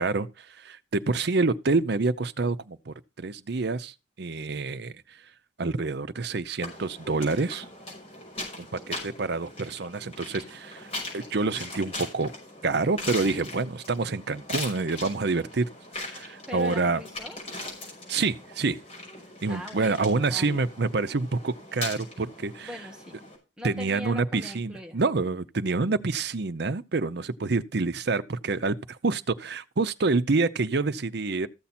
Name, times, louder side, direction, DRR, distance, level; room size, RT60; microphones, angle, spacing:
voice 1, 0.0-4.9 5.6-7.6 8.6-10.9 11.1-12.3 12.6-15.7 16.1-17.0 18.1-18.8 19.4-22.7 23.6-28.8 29.0-31.5, right 3 dB, 60° right, 0.7 m, -27 dB
sound 1, 6.6-23.4, left 2 dB, 35° left, 5.6 m, -40 dB
voice 2, 8.7-9.0 16.5-17.6 19.5-20.6 22.6-23.2 23.6-25.0, left 1 dB, 5° right, 1.9 m, -41 dB
14.5 x 7.1 x 4.3 m
head